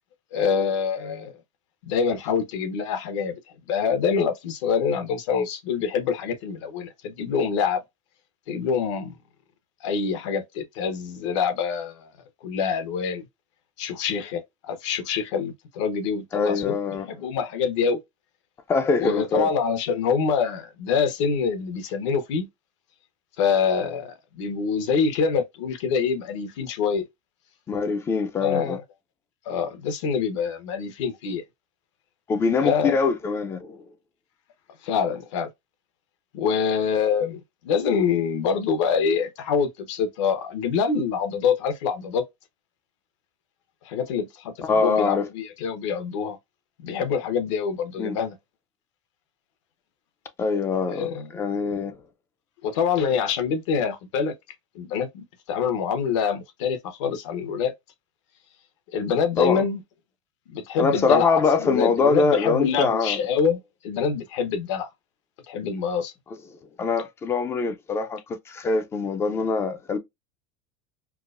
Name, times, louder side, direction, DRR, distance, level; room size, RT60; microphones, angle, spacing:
voice 1, 0.3-1.3 1.8-3.4 3.7-7.8 8.5-9.2 9.8-12.1 12.4-13.2 13.8-14.4 14.7-16.8 17.0-18.0 19.0-22.5 23.4-27.1 28.4-28.8 29.5-31.4 32.6-33.0 34.8-35.5 36.3-42.2 43.8-44.5 44.8-46.4 46.8-48.3 50.9-51.3 52.6-54.3 54.7-57.7 58.9-59.8 60.5-63.6 63.8-64.9 65.5-66.1, left 6 dB, 70° left, 1.0 m, -25 dB
voice 2, 16.3-17.1 18.7-19.5 27.7-28.8 32.3-33.8 44.6-45.3 48.0-48.2 50.4-52.0 59.4-59.7 60.8-63.3 66.5-70.0, left 4 dB, 15° left, 0.4 m, -24 dB
4.6 x 2.1 x 2.5 m
supercardioid pair, 160°, 16 cm